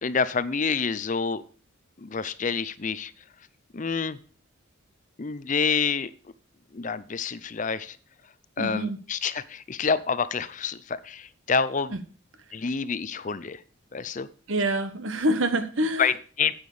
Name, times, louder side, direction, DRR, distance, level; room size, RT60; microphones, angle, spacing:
voice 1, 0.0-1.4 2.0-3.1 3.7-4.2 5.2-6.1 6.7-8.0 8.6-12.0 12.5-13.6 13.9-14.3 16.0-16.5, left 5 dB, 35° left, 16 dB, 0.5 m, -28 dB
voice 2, 8.6-9.0 11.9-12.0 14.5-16.1, right 1 dB, 70° right, 10 dB, 1.3 m, -26 dB
9.4 x 8.8 x 4.9 m, 0.40 s
head